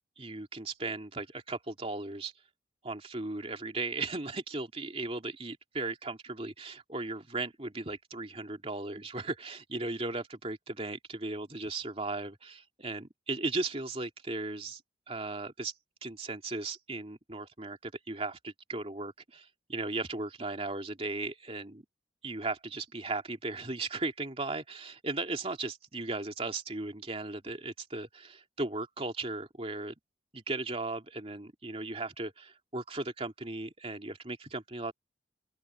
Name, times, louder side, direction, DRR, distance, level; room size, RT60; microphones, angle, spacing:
voice 1, 0.2-2.3 2.8-14.8 15.1-15.7 16.0-21.8 22.2-29.9 30.3-34.9, right 2 dB, 35° right, 2.8 m, -37 dB
head